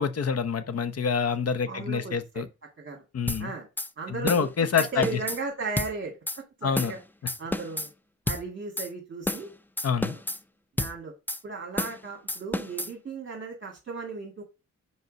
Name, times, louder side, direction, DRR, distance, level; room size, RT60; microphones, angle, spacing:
voice 1, 0.0-2.5 3.1-3.5 4.1-5.1 6.6-6.9 9.8-10.2, left 6 dB, 55° left, 0.9 m, -27 dB
voice 2, 1.7-2.4 2.8-3.0 3.4-3.7 4.0-7.0 7.4-7.9 8.3-9.5 10.1-10.2 10.8-11.1 11.4-14.4, right 3 dB, 40° right, 2.1 m, -36 dB
sound 1, 3.3-3.4 3.8-3.9 4.3-4.5 4.8-5.4 5.8-5.9 6.3-6.4 6.8-7.0 7.3-7.9 8.3-8.4 8.8-8.9 9.3-9.5 9.8-10.4 10.8-10.9 11.3-11.4 11.8-12.0 12.3-12.9, left 1 dB, 5° left, 0.5 m, -30 dB
5.5 x 4.7 x 5.2 m
cardioid pair, 95°, 30 cm